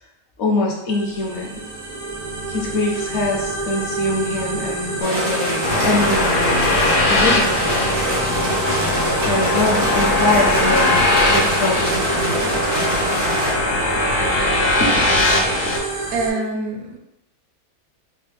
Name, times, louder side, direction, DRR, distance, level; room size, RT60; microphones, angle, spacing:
voice 1, 0.4-1.5 2.5-8.0 9.2-11.0 11.3-12.9 14.8-14.9, left 2 dB, 60° left, -1 dB, 0.9 m, -24 dB
sound 1, 0.9-16.3, right 2 dB, 50° right, 0.4 m, -28 dB
sound 2, 5.0-13.5, right 1 dB, 85° right, 1.8 m, -24 dB
sound 3, 5.6-15.8, left 2 dB, 85° left, 1.1 m, -20 dB
voice 2, 16.1-17.0, right 3 dB, 70° right, 2 dB, 1.0 m, -25 dB
4.0 x 2.0 x 3.4 m, 0.91 s
omnidirectional pair, 1.5 m